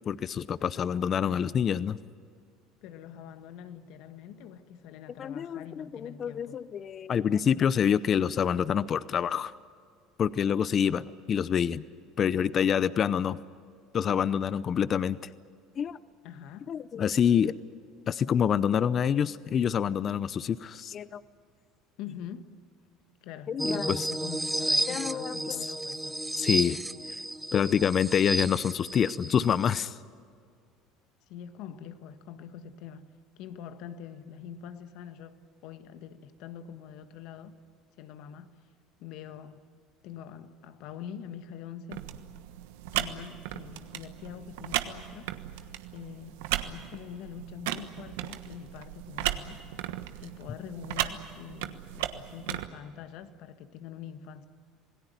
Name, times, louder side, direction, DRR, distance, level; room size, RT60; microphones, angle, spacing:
voice 1, 0.1-2.0 5.2-9.5 10.2-11.8 12.2-13.4 13.9-15.2 15.8-16.0 16.7-17.5 18.1-21.2 23.5-24.1 24.9-25.6 26.4-26.8 27.5-30.0, left 8 dB, 40° left, 0.7 m, -27 dB
voice 2, 2.8-6.6 16.2-16.7 22.0-22.5 23.2-26.2 31.3-33.1 33.4-35.4 35.6-37.5 38.0-38.5 39.0-39.6 40.0-42.1 42.9-45.3 45.6-46.4 46.6-49.6 50.2-54.5, left 8 dB, 65° left, 1.7 m, -44 dB
sound 1, 23.6-29.8, right 1 dB, 5° right, 0.8 m, -32 dB
sound 2, 41.9-52.7, right 13 dB, 80° right, 1.3 m, -36 dB
27.0 x 18.5 x 9.4 m
supercardioid pair, 95°, 0 cm